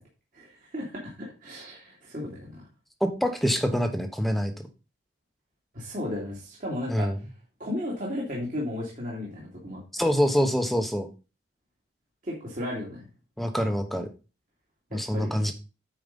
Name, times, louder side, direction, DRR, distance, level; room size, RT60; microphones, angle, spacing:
voice 1, 0.3-2.6 5.7-7.1 7.6-9.8 12.2-13.0 14.9-15.5, left 1 dB, 45° right, -4 dB, 2.5 m, -34 dB
voice 2, 3.0-4.5 6.9-7.2 9.9-11.1 13.4-14.1 14.9-15.5, equal, ahead, 6 dB, 1.0 m, -25 dB
9.1 x 4.9 x 5.3 m, 0.32 s
head